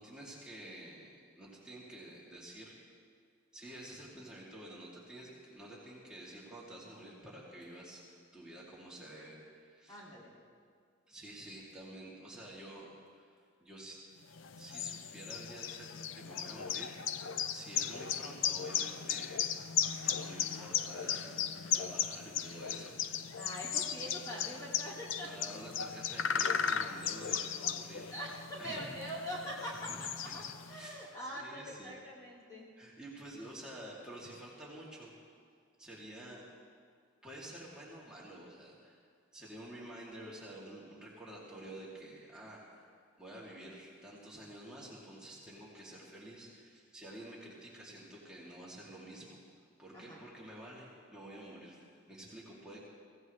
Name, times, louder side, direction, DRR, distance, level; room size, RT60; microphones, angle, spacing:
voice 1, 0.0-2.8 3.5-10.0 11.1-13.3 13.6-14.0 14.6-19.5 20.0-23.5 25.3-28.1 28.5-29.0 29.8-30.0 30.3-30.4 30.7-32.0 32.8-35.1 35.8-36.4 37.2-39.0 39.3-42.9 43.2-49.4 49.8-52.9, right 1 dB, 5° right, -7 dB, 2.6 m, -50 dB
voice 2, 9.9-10.3 23.4-25.3 28.1-29.7 30.0-32.7 49.9-50.2, equal, 20° left, -7 dB, 2.3 m, -43 dB
sound 1, 14.3-30.9, left 8 dB, 85° left, 0.6 m, -36 dB
24.0 x 16.5 x 3.2 m, 2.1 s
head